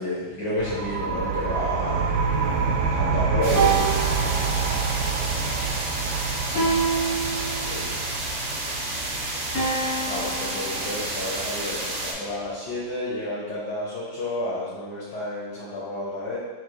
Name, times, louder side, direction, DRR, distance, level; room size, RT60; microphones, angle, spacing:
voice 1, 0.0-2.1 2.9-4.0 7.6-8.0 10.0-16.4, left 1 dB, 65° left, -8 dB, 1.3 m, -30 dB
sound 1, 0.6-12.0, right 5 dB, 75° right, 1.1 m, -28 dB
sound 2, 1.2-2.9 3.5-5.0 6.5-8.0 9.5-11.0, right 4 dB, 20° left, 0.5 m, -28 dB
sound 3, 3.4-12.1, right 2 dB, 55° right, 0.9 m, -31 dB
5.7 x 3.1 x 2.3 m, 1.3 s
omnidirectional pair, 2.0 m